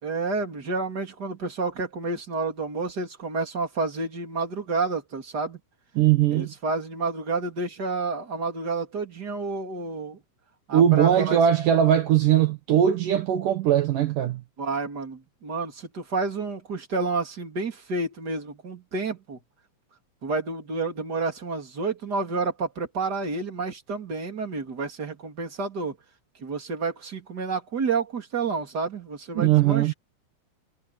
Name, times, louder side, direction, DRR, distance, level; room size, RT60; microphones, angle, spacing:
voice 1, 0.0-5.6 6.3-10.2 10.7-11.4 14.6-19.4 20.2-25.9 26.4-29.9, right 4 dB, 25° right, 3.1 m, -30 dB
voice 2, 6.0-6.5 10.7-14.4 29.4-29.9, right 10 dB, 80° right, 1.9 m, -20 dB
omnidirectional pair, 6.0 m